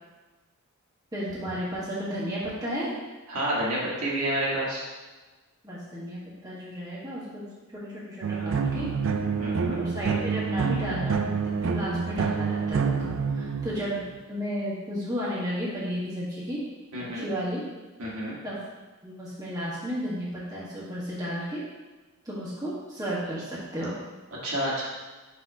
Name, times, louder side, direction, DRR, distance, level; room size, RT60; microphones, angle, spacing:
voice 1, 1.1-2.9 5.6-7.4 7.7-8.9 9.8-13.1 13.4-14.0 14.3-16.6 17.1-17.6 18.4-18.6 19.0-21.6 22.2-23.9, equal, 15° right, -8 dB, 1.6 m, -33 dB
voice 2, 3.3-4.8 9.4-9.8 16.9-17.3 18.0-18.3 24.4-24.8, right 1 dB, 85° right, -6 dB, 1.9 m, -29 dB
sound 1, 8.2-14.2, right 5 dB, 65° right, 0.4 m, -28 dB
6.0 x 3.4 x 5.4 m, 1.2 s
head